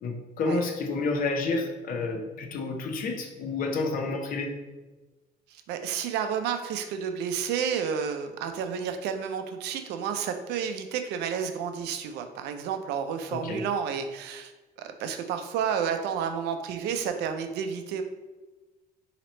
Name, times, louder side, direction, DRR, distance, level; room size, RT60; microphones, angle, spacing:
voice 1, 0.0-4.5 13.3-13.6, left 3 dB, 55° left, 3 dB, 0.7 m, -30 dB
voice 2, 5.5-14.5 14.8-18.0, right 7 dB, 85° right, 7 dB, 0.5 m, -31 dB
4.2 x 2.9 x 3.1 m, 1.2 s
cardioid pair, 110°, 17 cm